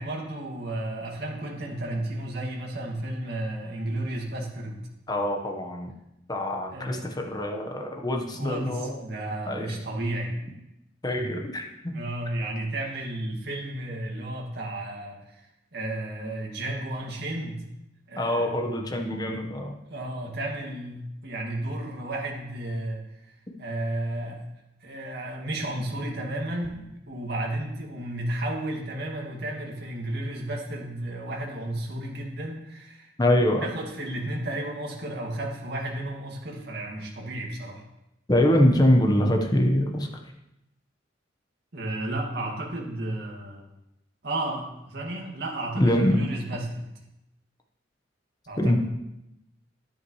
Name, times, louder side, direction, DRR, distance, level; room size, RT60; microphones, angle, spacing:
voice 1, 0.0-4.8 6.7-7.1 8.3-10.4 11.9-15.5 15.7-17.6 18.1-18.6 18.9-19.5 19.9-23.0 23.6-24.5 24.8-33.1 33.6-37.8 41.7-43.7 44.2-46.9 48.5-48.8, right 1 dB, 60° right, -1 dB, 2.1 m, -33 dB
voice 2, 5.1-5.9 6.3-9.0 9.5-9.8 11.0-11.9 18.1-19.8 33.2-33.6 38.3-40.1 45.8-46.2 48.6-48.8, left 1 dB, 20° left, 3 dB, 1.1 m, -24 dB
10.5 x 9.6 x 3.2 m, 0.87 s
head